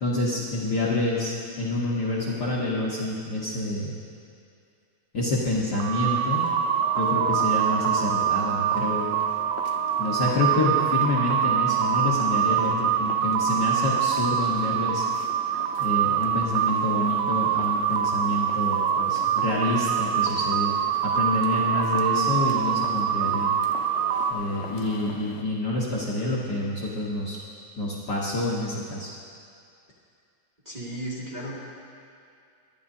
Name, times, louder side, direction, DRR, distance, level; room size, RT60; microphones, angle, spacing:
voice 1, 0.0-4.0 5.1-6.4 7.0-9.1 10.0-15.1 15.8-20.8 21.0-23.5 24.3-27.4 27.8-29.1, left 2 dB, 90° left, -6 dB, 0.9 m, -28 dB
sound 1, 5.7-24.3, right 8 dB, 85° right, 2.3 m, -25 dB
sound 2, 6.1-25.4, left 7 dB, 75° left, 1.7 m, -43 dB
Wind instrument woodwind instrument, 6.7-12.5, right 10 dB, 70° right, 2.8 m, -36 dB
voice 2, 30.6-31.6, right 1 dB, 15° right, -6 dB, 1.6 m, -34 dB
23.0 x 12.5 x 2.7 m, 2.4 s
omnidirectional pair, 4.0 m